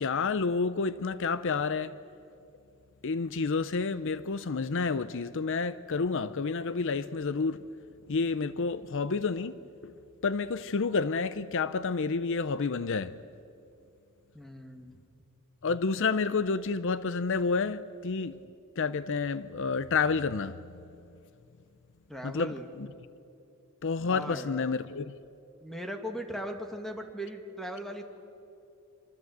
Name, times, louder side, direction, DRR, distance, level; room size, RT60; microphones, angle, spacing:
voice 1, 0.0-2.0 3.0-7.7 8.1-9.9 10.2-13.2 15.6-18.4 18.8-20.8 22.2-22.9 23.8-25.1, left 4 dB, 60° left, 0.6 m, -30 dB
voice 2, 14.3-15.0 22.1-22.7 24.1-24.6 25.6-28.0, equal, ahead, 2.2 m, -38 dB
26.5 x 25.5 x 8.1 m
head